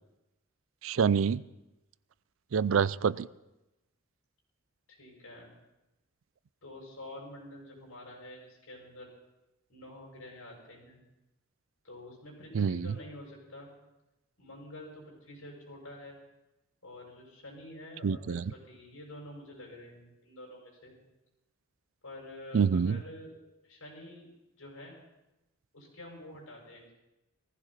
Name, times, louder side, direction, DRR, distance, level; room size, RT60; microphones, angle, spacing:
voice 1, 0.8-1.4 2.5-3.3 12.5-12.9 18.0-18.4 22.5-23.0, right 6 dB, 70° right, 19 dB, 0.4 m, -26 dB
voice 2, 4.9-5.5 6.6-9.1 9.7-11.0 11.8-13.7 14.4-16.2 16.8-20.9 22.0-23.3 23.6-24.3 24.6-24.9 25.7-26.9, left 1 dB, 85° left, -1 dB, 6.3 m, -48 dB
19.0 x 15.0 x 4.2 m, 0.95 s
head